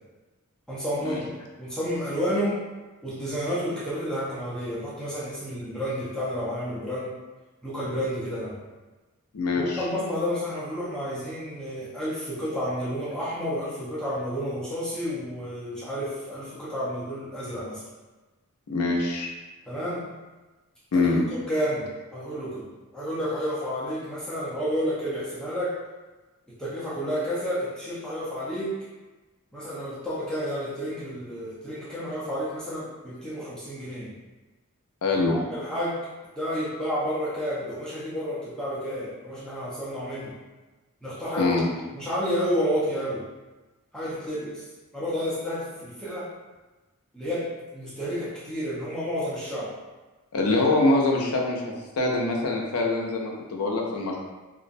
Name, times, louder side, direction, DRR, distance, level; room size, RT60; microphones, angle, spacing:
voice 1, 0.7-1.3 1.6-2.6 3.0-7.1 7.6-8.6 9.6-17.8 19.7-20.1 20.9-21.1 21.5-22.7 22.9-25.8 26.6-28.8 29.5-34.1 35.3-36.0 36.4-40.3 41.0-41.6 41.9-43.2 43.9-44.6 44.9-46.3 47.1-49.7, equal, 5° left, -11 dB, 0.5 m, -30 dB
voice 2, 9.3-9.8 18.7-19.3 20.9-21.2 35.0-35.4 41.4-41.7 50.3-54.2, left 2 dB, 85° left, -1 dB, 0.5 m, -24 dB
2.5 x 2.0 x 2.5 m, 1.2 s
head